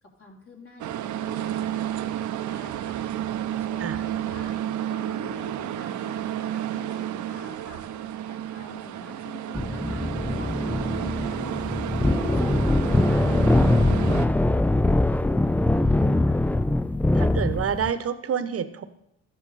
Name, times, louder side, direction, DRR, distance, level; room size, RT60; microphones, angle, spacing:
voice 1, 0.0-4.6 4.9-7.8 8.3-13.3 13.6-16.5, left 3 dB, 45° left, -2 dB, 3.7 m, -48 dB
sound 1, 0.8-14.3, right 11 dB, 75° right, 0.8 m, -31 dB
sound 2, 9.5-17.9, left 2 dB, 5° left, 0.4 m, -22 dB
voice 2, 13.9-14.2 17.2-18.8, right 7 dB, 50° right, 11 dB, 1.1 m, -28 dB
13.5 x 10.0 x 4.2 m, 0.81 s
cardioid pair, 90°, 30 cm